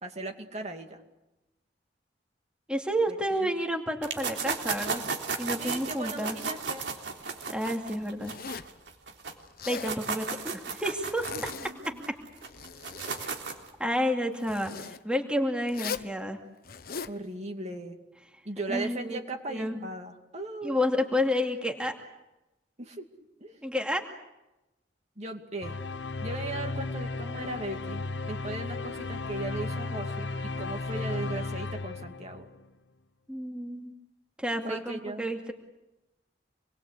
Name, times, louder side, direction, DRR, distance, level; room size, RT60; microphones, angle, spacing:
voice 1, 0.0-1.0 3.4-3.5 5.6-6.9 11.3-12.1 12.9-13.2 17.0-18.0 18.4-20.8 22.8-23.1 23.4-23.6 25.2-25.7 26.2-32.5 34.6-35.3, right 2 dB, 40° right, 4 dB, 2.5 m, -38 dB
voice 2, 2.7-5.0 5.4-6.4 7.5-8.3 9.7-11.2 11.9-12.1 13.8-16.4 18.7-19.2 19.5-19.8 20.6-21.9 23.6-24.0 33.3-33.9 34.4-35.5, equal, 5° right, 3 dB, 2.4 m, -30 dB
sound 1, 4.0-9.3 9.6-13.7, right 5 dB, 85° right, 3.5 m, -35 dB
Zipper (clothing), 8.2-8.8 9.4-10.0 11.0-11.9 12.3-13.3 14.4-15.0 15.7-16.1 16.6-17.2, left 6 dB, 60° left, 1.1 m, -39 dB
sound 2, 25.6-32.7, left 3 dB, 85° left, 1.0 m, -35 dB
27.5 x 21.0 x 8.4 m, 0.97 s
head